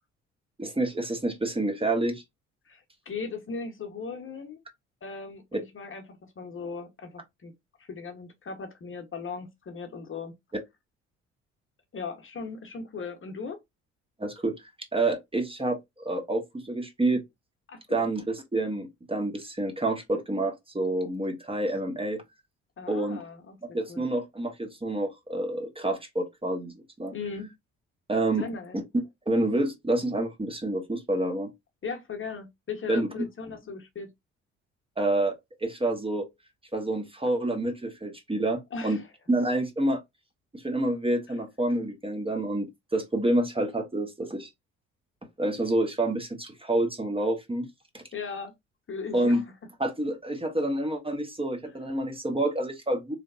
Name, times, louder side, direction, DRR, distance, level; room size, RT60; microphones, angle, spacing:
voice 1, 0.6-2.2 14.2-14.5 14.9-17.2 17.9-22.2 22.9-23.2 23.7-27.1 28.1-28.5 29.3-31.5 32.9-33.1 35.0-36.3 36.7-39.0 39.3-40.0 40.5-44.5 45.4-47.7 47.9-48.0 49.1-49.4 49.8-53.2, right 1 dB, 15° right, 1.1 m, -28 dB
voice 2, 2.7-4.6 5.0-7.5 7.8-10.3 11.9-13.6 17.7-18.1 22.8-23.6 23.9-24.0 27.1-27.5 28.4-28.8 31.8-34.1 38.7-39.1 48.1-48.5 48.9-49.4, left 5 dB, 35° left, 1.1 m, -38 dB
3.7 x 3.4 x 2.5 m
figure-of-eight pair, 45°, 37 cm